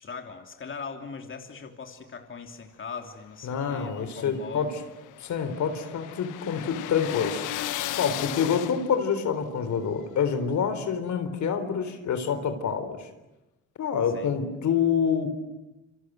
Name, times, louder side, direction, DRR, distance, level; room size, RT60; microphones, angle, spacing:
voice 1, 0.0-4.7 14.1-14.3, left 5 dB, 40° left, 5 dB, 3.1 m, -40 dB
voice 2, 3.4-4.8 5.2-7.5 8.0-13.1 13.8-15.3, left 7 dB, 70° left, 9 dB, 3.9 m, -27 dB
sound 1, 3.7-9.1, left 13 dB, 90° left, 1.5 m, -35 dB
28.5 x 26.0 x 7.9 m, 0.98 s
cardioid pair, 90°, 30 cm